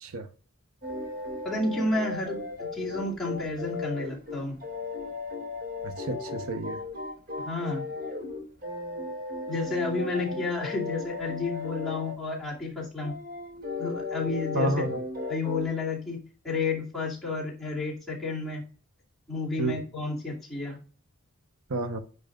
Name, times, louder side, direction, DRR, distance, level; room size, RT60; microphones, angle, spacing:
sound 1, 0.8-12.2 12.8-15.7, left 3 dB, 45° right, 2.2 m, -36 dB
voice 1, 1.4-4.6 7.4-7.9 9.5-13.1 13.8-14.9 15.3-18.6 19.3-20.8, left 3 dB, ahead, 2.4 m, -31 dB
voice 2, 5.8-6.8 14.5-15.0 19.6-19.8 21.7-22.0, right 2 dB, 90° right, 0.9 m, -30 dB
10.5 x 4.7 x 2.3 m
head